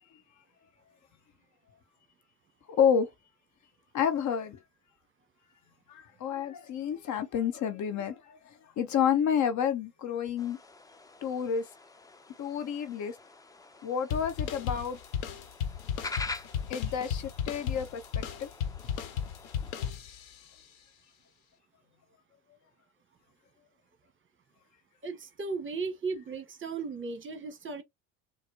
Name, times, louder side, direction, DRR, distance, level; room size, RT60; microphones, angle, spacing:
voice 1, 2.7-3.1 3.9-4.6 5.9-10.6 11.2-11.6 12.4-13.2 13.8-15.0 16.7-18.5, left 8 dB, 45° left, 0.7 m, -29 dB
sound 1, 10.4-19.9, left 3 dB, 10° left, 0.4 m, -45 dB
sound 2, 14.1-20.5, left 8 dB, 85° left, 0.9 m, -35 dB
voice 2, 25.0-27.8, right 4 dB, 30° right, 1.0 m, -36 dB
4.1 x 2.0 x 2.7 m
hypercardioid pair, 75°, 41 cm